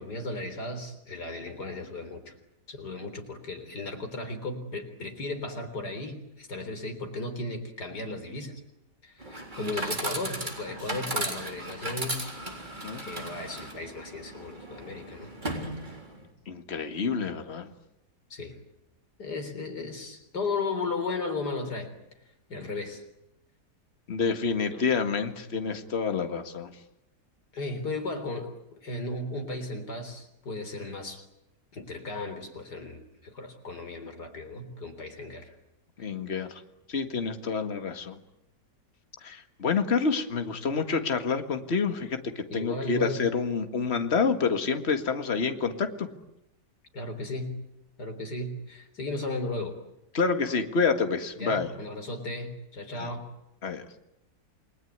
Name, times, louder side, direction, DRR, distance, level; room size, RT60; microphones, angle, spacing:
voice 1, 0.0-2.3 2.7-8.6 9.0-12.3 13.0-15.3 18.3-18.6 19.2-21.9 22.5-23.0 24.7-24.8 27.5-31.2 31.7-35.5 42.5-43.2 46.9-47.6 48.0-49.8 51.4-53.3, left 2 dB, 75° left, 7 dB, 4.4 m, -35 dB
Chatter / Coin (dropping), 9.2-16.2, right 1 dB, 25° right, 3.9 m, -36 dB
voice 2, 16.5-17.7 24.1-26.7 36.0-36.6 36.9-38.2 39.2-46.1 50.1-51.7 53.0-53.1 53.6-53.9, left 5 dB, 40° left, 8 dB, 2.0 m, -28 dB
29.0 x 21.0 x 9.4 m, 0.85 s
omnidirectional pair, 1.8 m